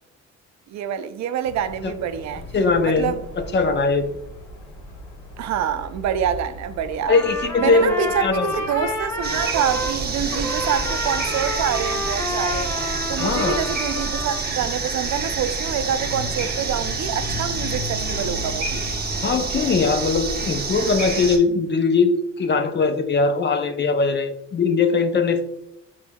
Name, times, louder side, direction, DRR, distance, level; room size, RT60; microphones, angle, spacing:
voice 1, 0.7-2.4 2.8-3.1 5.4-7.1 7.6-12.8 13.1-18.9, right 9 dB, 65° right, 0.5 m, -26 dB
sound 1, 1.4-19.2, left 2 dB, 80° left, 1.4 m, -38 dB
voice 2, 2.5-3.1 3.5-4.1 7.1-8.5 13.2-13.6 19.2-25.4, left 4 dB, 35° left, 0.5 m, -20 dB
Trumpet, 7.0-10.0 10.3-14.4, left 1 dB, 10° left, 1.1 m, -29 dB
sound 2, 9.2-21.4, right 4 dB, 30° right, 0.9 m, -28 dB
4.5 x 4.4 x 2.2 m
cardioid pair, 90°, 30 cm